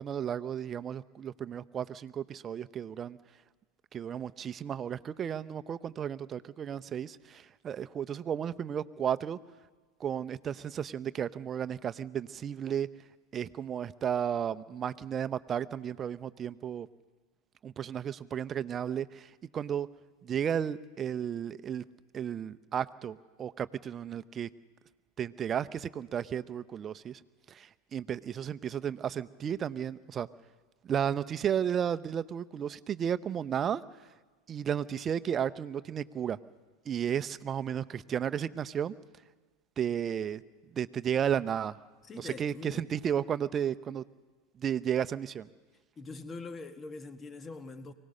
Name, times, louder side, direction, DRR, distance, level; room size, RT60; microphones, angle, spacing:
voice 1, 0.0-3.2 3.9-9.4 10.0-12.9 13.3-16.9 17.6-19.9 20.2-21.8 22.1-24.5 25.2-27.2 27.5-30.3 30.8-33.8 34.5-36.4 36.9-38.9 39.8-40.4 40.7-41.8 42.1-44.1 44.6-45.5, right 9 dB, 30° right, 0.8 m, -33 dB
voice 2, 42.0-42.9 46.0-47.9, left 3 dB, 25° left, 1.5 m, -43 dB
24.0 x 18.0 x 6.7 m
hypercardioid pair, 90°, 0 cm